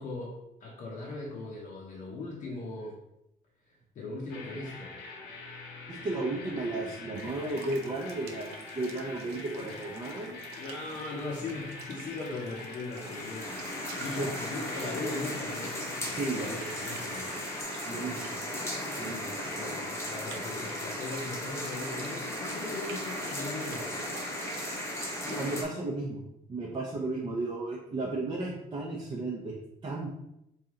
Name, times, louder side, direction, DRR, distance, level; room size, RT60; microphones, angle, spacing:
voice 1, 0.0-3.0 3.6-4.9 5.8-6.3 9.5-9.8 10.5-17.3 19.5-23.9 25.5-25.6, left 2 dB, 50° left, -3 dB, 0.8 m, -39 dB
sound 1, 4.3-17.6, left 4 dB, 85° left, 0.7 m, -45 dB
voice 2, 5.9-10.4 14.0-14.3 16.0-16.6 17.9-18.3 19.0-19.3 25.2-26.2 26.5-29.6 29.8-30.1, right 2 dB, 25° right, -3 dB, 0.6 m, -34 dB
sound 2, 7.2-25.7, right 5 dB, 75° right, 0.5 m, -50 dB
sound 3, 12.9-25.6, left 1 dB, 15° left, 0.9 m, -36 dB
3.2 x 2.8 x 3.7 m, 0.84 s
cardioid pair, 110°, 17 cm